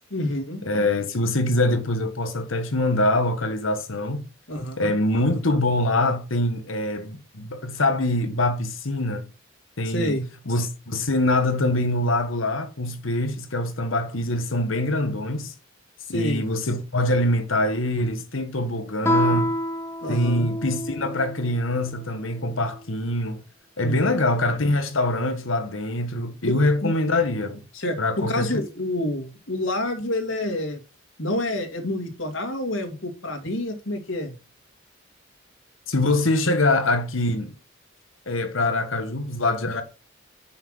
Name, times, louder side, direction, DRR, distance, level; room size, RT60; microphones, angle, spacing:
voice 1, 0.1-0.6 4.5-4.9 9.8-10.3 16.1-16.5 20.0-20.5 23.8-24.0 26.4-26.5 26.8-26.9 27.7-30.8 31.2-34.3, left 1 dB, 70° left, 2.1 m, -28 dB
voice 2, 0.6-4.2 4.8-9.3 9.8-10.2 10.4-15.5 16.1-19.5 20.1-23.4 23.8-27.6 28.0-28.6 35.9-37.5 38.3-39.8, left 1 dB, 90° left, 1.5 m, -24 dB
Guitar, 19.0-21.5, equal, 15° left, 0.9 m, -26 dB
5.8 x 5.7 x 6.2 m
head